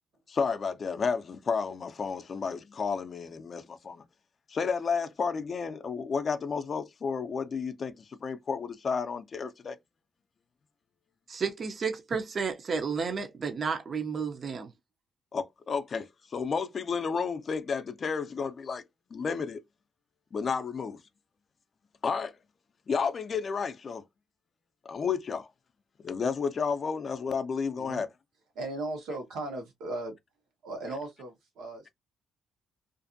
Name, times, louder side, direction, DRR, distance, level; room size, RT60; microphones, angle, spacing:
voice 1, 0.3-4.0 4.5-9.8 15.3-18.8 19.1-19.6 20.3-21.0 22.0-22.4 22.9-24.0 24.8-25.5 26.0-28.1, left 5 dB, 45° left, 0.4 m, -31 dB
voice 2, 11.3-14.7, right 5 dB, 45° right, 0.5 m, -32 dB
voice 3, 28.5-30.1 30.6-31.9, right 2 dB, 85° right, 1.0 m, -37 dB
2.5 x 2.4 x 2.5 m
cardioid pair, 90°, 0 cm